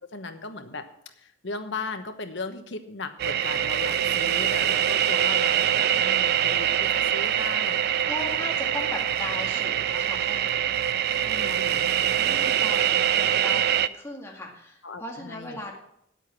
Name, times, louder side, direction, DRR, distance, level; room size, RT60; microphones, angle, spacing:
voice 1, 0.1-0.8 1.2-7.9 11.2-11.9 12.4-12.6 14.8-15.6, left 3 dB, 65° left, 8 dB, 1.1 m, -37 dB
sound 1, 3.2-13.9, right 10 dB, 55° right, 0.4 m, -24 dB
sound 2, 6.3-13.9, right 3 dB, 90° right, 3.7 m, -56 dB
voice 2, 8.1-10.7 12.2-15.8, left 1 dB, 15° left, -1 dB, 2.1 m, -38 dB
9.7 x 8.2 x 7.4 m, 0.76 s
head